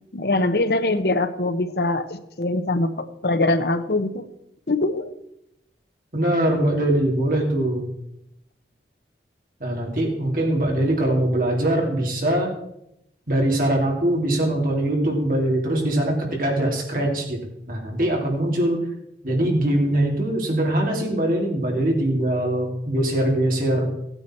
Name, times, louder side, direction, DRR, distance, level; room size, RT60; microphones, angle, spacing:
voice 1, 0.1-4.3 4.7-5.1, left 2 dB, 65° left, 10 dB, 0.9 m, -23 dB
voice 2, 6.1-7.9 9.6-12.5 13.3-17.4 17.7-18.8 19.2-23.9, right 1 dB, 50° right, 0 dB, 2.9 m, -22 dB
15.0 x 9.2 x 4.4 m, 0.80 s
head